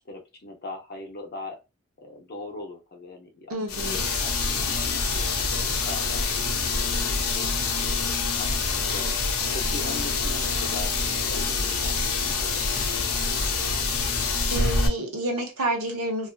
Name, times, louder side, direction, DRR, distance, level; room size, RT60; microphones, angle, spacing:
voice 1, 0.1-1.6 2.0-5.0 5.5-7.3 8.2-9.2 9.5-13.2, left 2 dB, 45° left, 2 dB, 0.6 m, -41 dB
voice 2, 3.5-4.1 14.1-16.3, right 1 dB, 80° right, 2 dB, 0.9 m, -29 dB
sound 1, 3.7-14.9, left 4 dB, 85° left, 0.6 m, -26 dB
2.4 x 2.4 x 2.3 m, 0.26 s
head